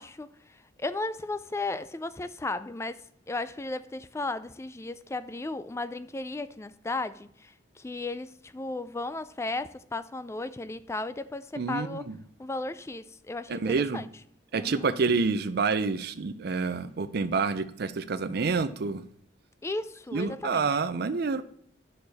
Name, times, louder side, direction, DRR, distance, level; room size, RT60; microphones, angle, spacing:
voice 1, 0.0-12.1 12.4-14.1 14.5-14.8 19.6-20.7, left 2 dB, 15° left, 0.4 m, -35 dB
voice 2, 11.5-12.1 13.5-14.0 14.5-19.0 20.1-21.4, right 4 dB, 60° right, 0.5 m, -28 dB
9.4 x 6.7 x 4.1 m
head